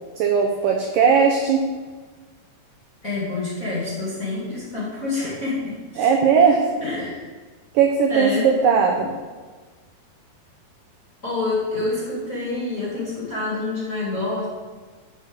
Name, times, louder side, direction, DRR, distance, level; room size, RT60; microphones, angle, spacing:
voice 1, 0.2-1.6 6.0-6.6 7.7-9.1, right 6 dB, 85° right, 1 dB, 1.9 m, -18 dB
voice 2, 3.0-6.1 6.8-7.2 8.1-8.5 11.2-14.4, left 2 dB, 30° left, -7 dB, 1.7 m, -27 dB
9.0 x 6.1 x 6.3 m, 1.4 s
omnidirectional pair, 4.8 m